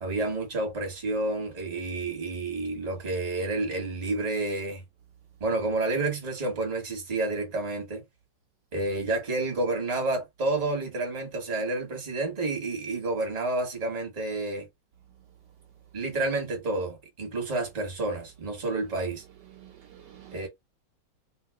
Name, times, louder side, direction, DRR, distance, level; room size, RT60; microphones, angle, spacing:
voice 1, 0.0-4.8 5.4-8.0 8.7-14.7 15.9-19.2 20.3-20.5, right 2 dB, 25° right, 1.1 m, -30 dB
voice 2, 19.4-20.5, right 11 dB, 70° right, 1.1 m, -49 dB
3.0 x 2.3 x 3.5 m
omnidirectional pair, 2.0 m